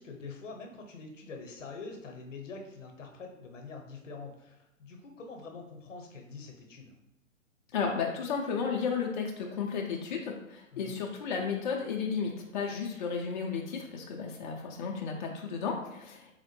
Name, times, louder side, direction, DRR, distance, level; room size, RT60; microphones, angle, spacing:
voice 1, 0.0-6.9 10.7-11.0, left 4 dB, 70° left, 2 dB, 0.8 m, -45 dB
voice 2, 7.7-16.3, left 5 dB, 40° left, 0 dB, 0.4 m, -33 dB
4.2 x 2.1 x 3.0 m, 0.89 s
figure-of-eight pair, 120°, 39 cm